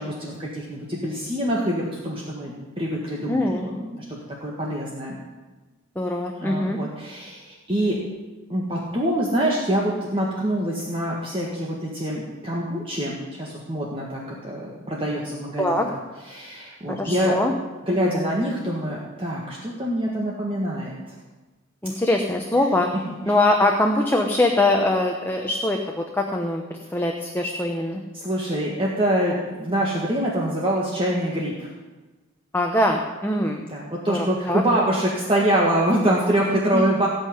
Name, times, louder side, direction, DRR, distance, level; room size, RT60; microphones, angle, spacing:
voice 1, 0.0-5.2 6.4-8.0 8.5-15.9 16.3-17.4 17.9-21.1 26.9-27.0 28.1-31.7 33.7-37.1, right 1 dB, 25° right, -4 dB, 1.7 m, -25 dB
voice 2, 3.3-3.7 6.0-6.8 15.6-15.9 16.9-17.5 21.8-22.9 23.3-28.0 32.5-33.7 34.1-34.6 36.7-36.9, left 1 dB, 10° left, 2 dB, 0.9 m, -22 dB
17.0 x 5.6 x 9.4 m, 1.2 s
head